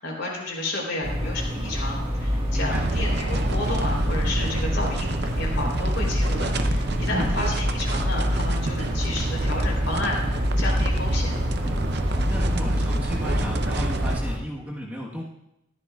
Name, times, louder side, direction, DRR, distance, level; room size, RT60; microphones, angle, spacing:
voice 1, 0.0-11.3, left 2 dB, 65° left, -2 dB, 4.0 m, -31 dB
sound 1, 1.0-14.4, equal, 25° right, 1.7 m, -26 dB
voice 2, 2.5-2.8 7.1-7.3 12.3-15.2, equal, 10° right, -4 dB, 1.3 m, -33 dB
sound 2, 2.7-14.2, right 2 dB, 55° right, 0.7 m, -29 dB
14.5 x 12.5 x 2.4 m, 0.86 s
head